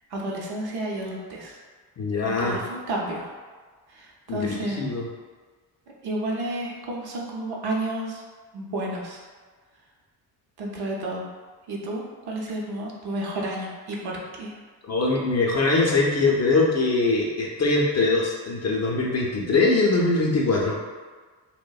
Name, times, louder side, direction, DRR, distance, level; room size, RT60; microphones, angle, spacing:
voice 1, 0.1-1.6 2.2-3.3 3.9-4.8 6.0-8.2 8.5-9.2 10.6-11.3 11.7-14.6, right 1 dB, 55° right, -2 dB, 0.7 m, -31 dB
voice 2, 2.0-2.6 4.3-5.0 14.9-20.8, left 3 dB, 35° left, -3 dB, 0.5 m, -22 dB
2.5 x 2.1 x 2.3 m, 1.4 s
supercardioid pair, 55°, 47 cm